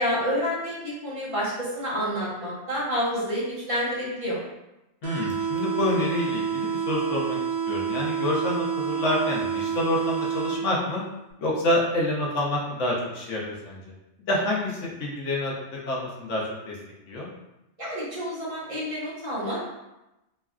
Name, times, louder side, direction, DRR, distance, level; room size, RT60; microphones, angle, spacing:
voice 1, 0.0-4.4 17.8-19.6, equal, 30° right, -8 dB, 0.9 m, -28 dB
voice 2, 5.0-7.4 7.7-11.0 11.4-13.8 14.3-16.8 17.1-17.3, left 1 dB, 80° left, -3 dB, 1.1 m, -27 dB
sound 1, 5.0-11.0, right 7 dB, 60° right, 0.5 m, -28 dB
3.1 x 2.5 x 2.3 m, 0.95 s
omnidirectional pair, 1.2 m